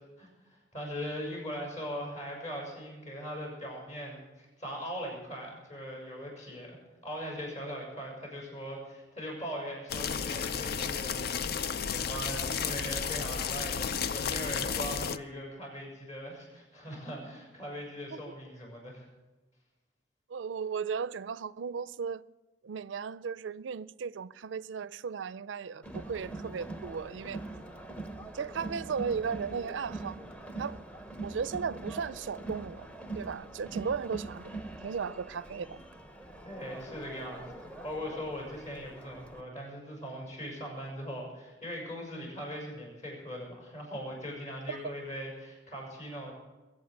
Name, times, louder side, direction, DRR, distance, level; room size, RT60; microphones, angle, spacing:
voice 1, 0.2-6.8 7.0-11.5 11.9-19.1 36.4-46.3, equal, 40° left, 6.8 m, -40 dB
sound 1, 9.9-15.2, left 7 dB, 55° left, 0.5 m, -33 dB
voice 2, 20.3-22.2 22.6-27.4 28.3-30.2 30.6-30.8 31.2-32.9 33.1-34.5 34.8-35.8 44.7-45.0, right 6 dB, 80° right, 0.4 m, -36 dB
Crowd, 25.8-39.4, right 2 dB, 5° left, 0.8 m, -43 dB
22.0 x 8.6 x 6.6 m
head